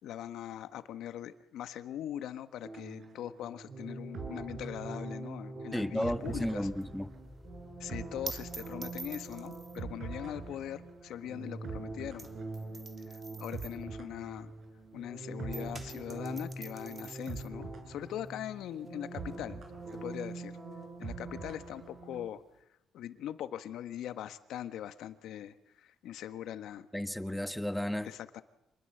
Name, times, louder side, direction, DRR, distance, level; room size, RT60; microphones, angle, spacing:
voice 1, 0.0-6.7 7.8-12.3 13.1-14.5 14.9-19.6 20.0-20.6 21.0-22.4 22.9-26.9 28.0-28.4, left 11 dB, 80° left, 1.5 m, -41 dB
sound 1, 2.6-22.3, right 3 dB, 55° right, 6.2 m, -43 dB
sound 2, 5.6-10.8, left 2 dB, 25° left, 5.7 m, -57 dB
voice 2, 5.7-7.1 26.9-28.1, equal, 5° left, 1.6 m, -33 dB
sound 3, 6.2-15.1 15.4-22.6, right 4 dB, 35° right, 2.9 m, -49 dB
27.0 x 21.5 x 8.0 m
cardioid pair, 90°, 0 cm